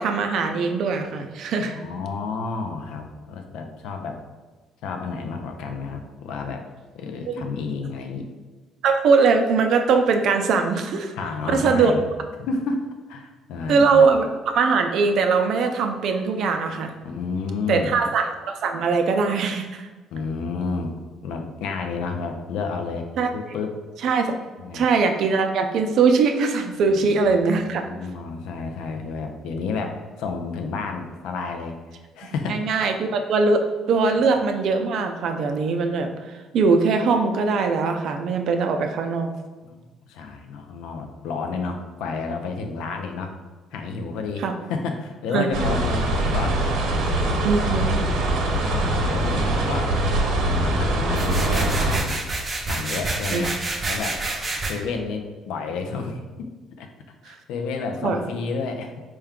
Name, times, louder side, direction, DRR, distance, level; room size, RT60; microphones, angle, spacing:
voice 1, 0.0-1.8 7.3-7.4 8.8-11.1 11.5-11.9 13.7-16.9 17.7-19.9 23.2-23.3 24.0-24.3 24.7-27.8 32.2-33.6 33.9-36.1 36.5-39.3 44.4-44.5 45.3-45.5 47.4-47.9 53.3-53.4 57.3-57.4 58.0-58.2, right 4 dB, 65° right, 5 dB, 0.4 m, -21 dB
voice 2, 1.6-4.2 4.8-6.6 6.9-8.3 11.1-12.1 12.4-12.8 13.1-14.1 17.0-17.9 20.1-20.9 21.2-23.1 23.3-23.7 24.6-24.9 26.9-31.8 32.2-32.6 39.6-39.8 40.1-43.3 43.7-44.4 44.7-47.5 48.0-49.9 50.4-52.2 52.7-53.5 53.9-54.2 54.7-56.5 56.8-56.9 57.2-59.0, left 4 dB, 85° left, 4 dB, 0.5 m, -31 dB
sound 1, 45.5-52.0, right 1 dB, 85° right, 0.9 m, -23 dB
sound 2, 51.1-54.7, right 2 dB, 25° right, 0.6 m, -28 dB
4.5 x 2.2 x 3.6 m, 1.3 s
cardioid pair, 110°, 0 cm